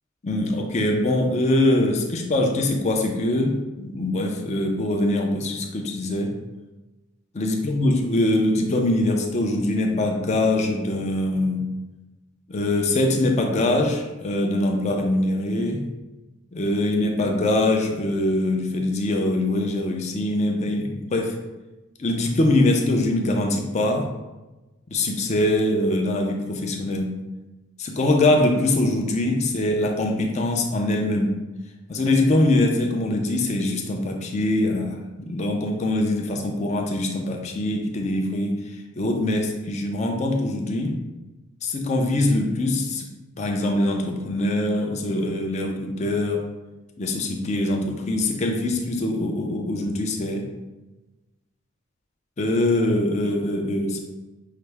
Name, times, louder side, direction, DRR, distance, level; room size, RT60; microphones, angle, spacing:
voice 1, 0.2-6.3 7.3-11.7 12.5-15.9 16.5-21.4 22.0-24.1 24.9-27.2 27.8-31.4 31.9-38.6 39.0-41.0 41.6-43.1 43.4-46.5 47.0-50.5 52.4-54.0, left 1 dB, 35° left, 2 dB, 0.4 m, -23 dB
5.7 x 2.1 x 3.3 m, 1.1 s
head